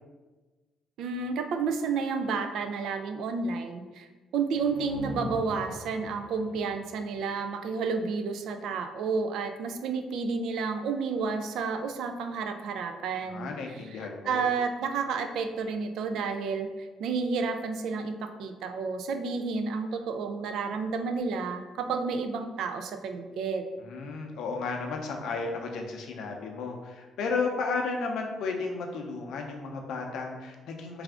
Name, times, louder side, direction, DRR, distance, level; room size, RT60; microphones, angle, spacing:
voice 1, 1.0-4.1 4.3-23.6, right 5 dB, 75° right, 7 dB, 0.3 m, -31 dB
sound 1, 4.5-8.3, equal, 10° right, 0.9 m, -42 dB
voice 2, 13.3-14.5 23.8-31.0, left 4 dB, 80° left, 2 dB, 0.5 m, -33 dB
3.3 x 2.4 x 3.6 m, 1.2 s
cardioid pair, 120°, 0 cm